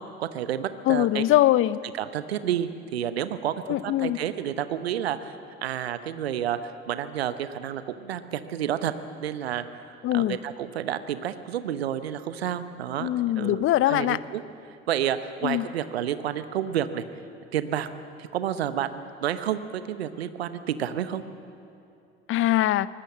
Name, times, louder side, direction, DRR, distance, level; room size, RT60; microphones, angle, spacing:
voice 1, 0.0-1.2 1.9-8.9 9.2-13.1 13.3-14.4 14.9-17.0 17.5-17.9 18.2-21.2, right 10 dB, 75° right, 12 dB, 1.0 m, -30 dB
voice 2, 0.9-1.8 3.7-4.2 10.0-10.4 13.0-14.2 15.4-15.6 22.3-22.9, left 14 dB, 40° left, 18 dB, 0.7 m, -22 dB
23.5 x 20.0 x 7.4 m, 2.6 s
figure-of-eight pair, 60°, 31 cm